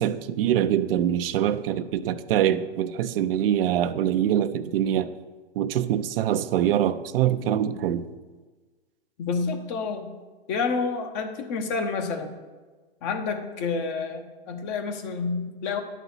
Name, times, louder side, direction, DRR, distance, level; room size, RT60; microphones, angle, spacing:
voice 1, 0.0-5.1 5.6-8.1, right 10 dB, 60° right, 0.5 m, -24 dB
voice 2, 9.2-10.1 10.5-12.4 13.0-15.8, left 4 dB, 45° left, 1.1 m, -29 dB
10.0 x 4.1 x 5.6 m
hypercardioid pair, 125°, 32 cm